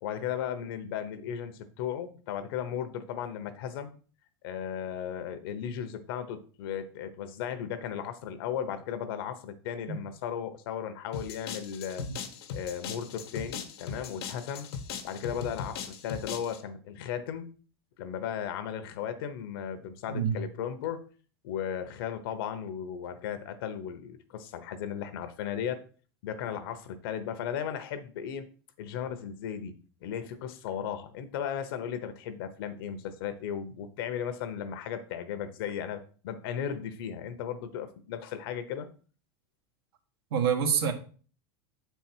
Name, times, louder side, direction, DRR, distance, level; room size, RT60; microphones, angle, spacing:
voice 1, 0.0-3.9 4.4-12.1 12.5-14.7 15.0-17.5 18.0-21.0 21.4-25.8 26.2-28.5 28.8-38.9, left 8 dB, 65° left, 10 dB, 1.0 m, -36 dB
sound 1, 11.1-16.6, left 7 dB, 85° left, 1.4 m, -39 dB
voice 2, 40.3-40.9, right 7 dB, 85° right, 5 dB, 1.5 m, -26 dB
7.9 x 4.6 x 4.5 m, 0.40 s
supercardioid pair, 160°, 13 cm